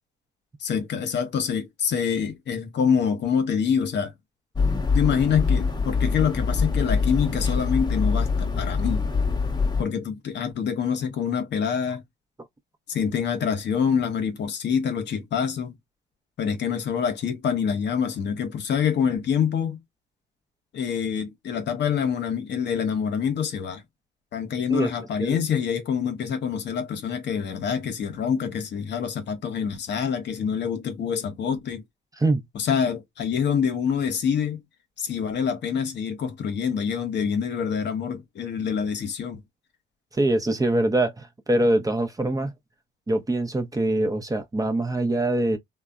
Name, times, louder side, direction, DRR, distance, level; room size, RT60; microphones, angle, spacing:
voice 1, 0.6-4.1 4.9-9.1 9.8-12.0 12.9-15.7 16.4-19.8 20.7-23.8 24.3-31.8 32.5-34.6 35.0-39.4, left 7 dB, 60° left, 0.8 m, -26 dB
sound 1, 4.6-9.8, left 4 dB, 20° left, 0.8 m, -24 dB
voice 2, 40.1-42.5 43.1-45.6, right 1 dB, 15° right, 0.6 m, -23 dB
3.2 x 2.1 x 2.4 m
cardioid pair, 90°, 20 cm